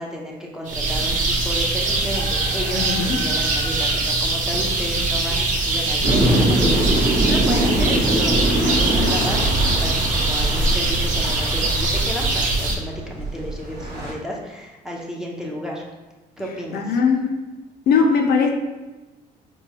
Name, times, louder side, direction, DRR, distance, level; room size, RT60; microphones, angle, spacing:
voice 1, 0.0-15.8 16.4-16.9, equal, 5° right, -2 dB, 0.6 m, -32 dB
sound 1, 0.7-12.7, right 2 dB, 50° right, 0.7 m, -22 dB
voice 2, 2.8-3.2 16.7-17.3 17.9-18.5, left 5 dB, 65° left, 3 dB, 0.5 m, -19 dB
sound 2, 6.0-14.1, right 1 dB, 80° right, 1.1 m, -22 dB
4.6 x 2.2 x 2.8 m, 1.1 s
cardioid pair, 110°, 17 cm